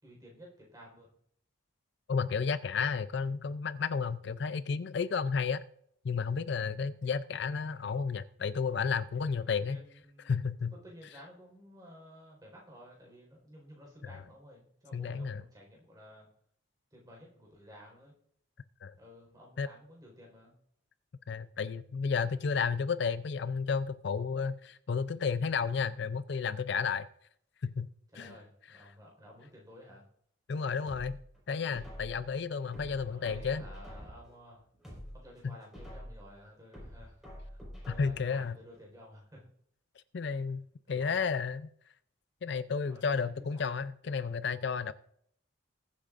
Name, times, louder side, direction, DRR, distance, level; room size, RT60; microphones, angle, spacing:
voice 1, 0.0-1.1 9.4-10.4 10.7-16.3 16.9-18.1 19.0-20.5 28.1-30.1 33.1-34.7 35.1-39.4 40.9-41.2 42.9-43.8, equal, 20° right, 4.3 m, -53 dB
voice 2, 2.1-5.6 6.0-9.8 10.3-10.7 14.1-14.2 14.9-15.4 18.8-18.9 19.6-19.7 21.3-27.1 27.6-27.9 28.2-28.3 30.5-31.2 31.5-33.6 37.9-38.6 40.1-41.7 42.4-44.9, left 5 dB, 60° left, 0.4 m, -32 dB
sound 1, 30.8-32.3 32.7-34.3 34.7-36.3 36.7-38.3 38.7-38.8, equal, ahead, 5.0 m, -47 dB
20.5 x 8.5 x 2.5 m
head